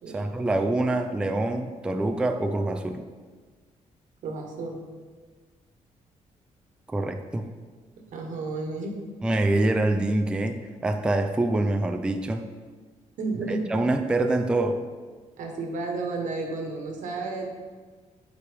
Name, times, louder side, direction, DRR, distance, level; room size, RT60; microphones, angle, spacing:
voice 1, 0.1-3.0 6.9-7.5 9.2-12.5 13.5-14.8, right 2 dB, 5° right, 5 dB, 0.3 m, -25 dB
voice 2, 4.2-4.8 8.1-8.9 13.2-13.6 15.4-17.5, right 3 dB, 80° right, 1 dB, 1.2 m, -32 dB
8.0 x 4.8 x 3.5 m, 1.4 s
cardioid pair, 135°, 13 cm